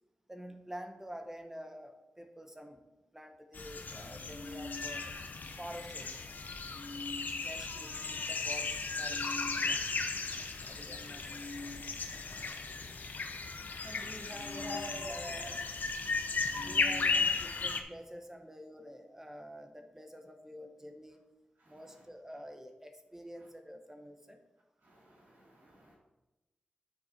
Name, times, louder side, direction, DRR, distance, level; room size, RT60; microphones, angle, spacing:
voice 1, 0.3-2.8 3.1-5.1 5.6-6.2 7.4-9.9 10.7-11.4 13.8-15.5 16.6-21.2 21.7-24.4, equal, 15° right, 5 dB, 1.3 m, -48 dB
sound 1, 3.5-17.8, left 4 dB, 65° left, 0.8 m, -36 dB
voice 2, 14.5-15.5 15.9-17.2 21.6-22.0 23.4-23.5 24.8-25.9, left 1 dB, 75° right, -6 dB, 2.8 m, -48 dB
10.0 x 4.6 x 4.4 m, 1.0 s
cardioid pair, 45°, 3 cm